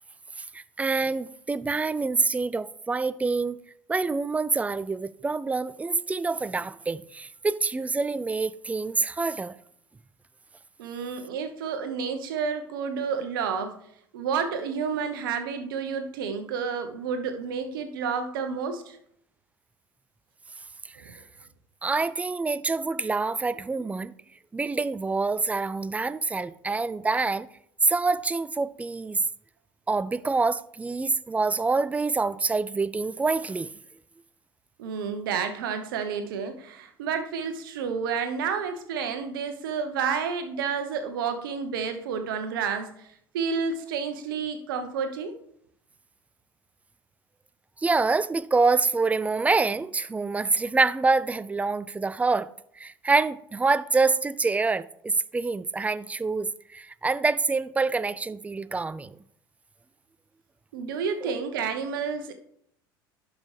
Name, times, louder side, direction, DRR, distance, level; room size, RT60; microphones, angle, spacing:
voice 1, 0.5-3.6 3.9-9.5 21.8-24.1 24.5-27.5 27.8-29.2 29.9-33.7 47.8-52.5 52.8-59.2 61.2-61.3, right 3 dB, 10° right, 0.3 m, -26 dB
voice 2, 10.8-13.8 14.1-19.0 21.0-21.2 34.8-43.1 43.3-45.3 60.7-62.3, right 6 dB, 70° right, 1.0 m, -30 dB
11.5 x 5.3 x 3.3 m
hypercardioid pair, 75°, 12 cm